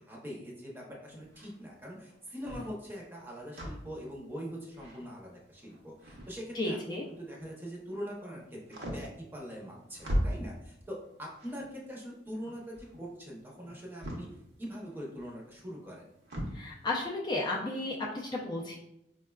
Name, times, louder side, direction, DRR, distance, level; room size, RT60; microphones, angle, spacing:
voice 1, 0.0-14.3 14.6-16.1, equal, 10° right, -3 dB, 0.6 m, -43 dB
sound 1, 1.1-7.8 8.1-16.7, equal, 65° right, 0.7 m, -40 dB
voice 2, 6.5-7.0 16.5-18.7, left 2 dB, 25° left, -3 dB, 0.3 m, -33 dB
4.6 x 2.2 x 2.2 m, 0.83 s
head